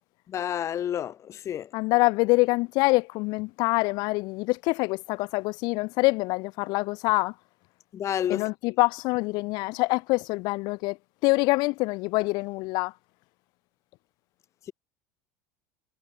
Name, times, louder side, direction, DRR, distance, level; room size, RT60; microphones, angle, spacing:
voice 1, 0.3-1.7 7.9-8.5, left 10 dB, 40° left, 1.6 m, -30 dB
voice 2, 1.7-7.3 8.3-11.0 11.2-12.9, left 25 dB, 65° left, 1.7 m, -25 dB
supercardioid pair, 105°, 8 cm